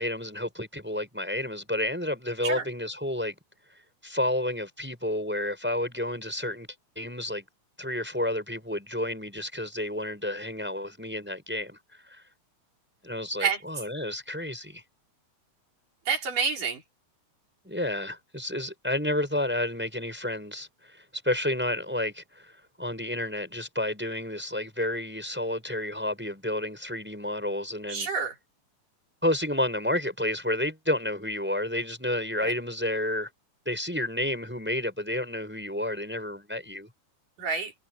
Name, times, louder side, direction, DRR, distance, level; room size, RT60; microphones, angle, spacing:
voice 1, 0.0-3.3 4.0-6.7 7.0-7.4 7.8-11.8 12.1-12.2 13.0-14.8 17.6-22.5 22.8-28.1 29.2-33.3 33.7-36.9, left 1 dB, 5° right, 5.8 m, -30 dB
voice 2, 16.1-16.8 27.9-28.3 32.4-32.5 37.4-37.7, right 6 dB, 85° right, 6.6 m, -28 dB
omnidirectional pair, 3.7 m